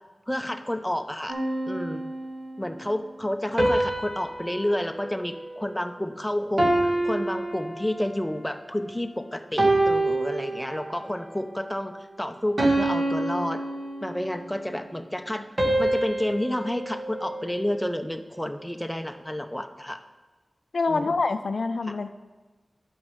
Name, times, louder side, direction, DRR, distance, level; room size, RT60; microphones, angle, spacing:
voice 1, 0.3-1.4 1.7-2.1 2.6-13.6 14.0-15.5 15.8-20.0 20.9-21.1 21.8-22.0, left 1 dB, 10° left, 7 dB, 0.7 m, -30 dB
sound 1, 1.3-2.6 3.6-6.1 6.6-8.3 8.9-9.1 9.6-11.1 11.6-11.9 12.6-14.5 15.6-18.0, right 1 dB, 50° right, 1.7 m, -27 dB
voice 2, 20.7-22.2, left 3 dB, 80° left, 10 dB, 0.4 m, -26 dB
11.0 x 6.3 x 5.6 m, 1.3 s
wide cardioid pair, 55°, 0 cm